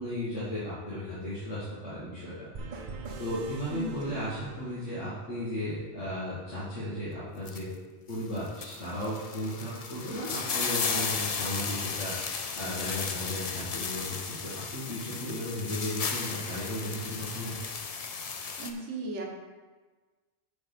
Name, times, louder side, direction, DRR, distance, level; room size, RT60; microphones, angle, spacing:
voice 1, 0.0-2.5 3.2-7.7 8.1-12.1 12.6-17.5, left 1 dB, 80° left, -10 dB, 2.2 m, -35 dB
sound 1, 2.5-5.3, right 4 dB, 50° right, 0.8 m, -43 dB
voice 2, 3.7-4.1 18.6-19.2, right 1 dB, 75° right, 1 dB, 1.5 m, -36 dB
sound 2, 7.4-7.6 8.1-18.7, left 5 dB, 45° left, 0.5 m, -35 dB
9.4 x 3.7 x 6.0 m, 1.3 s
omnidirectional pair, 1.2 m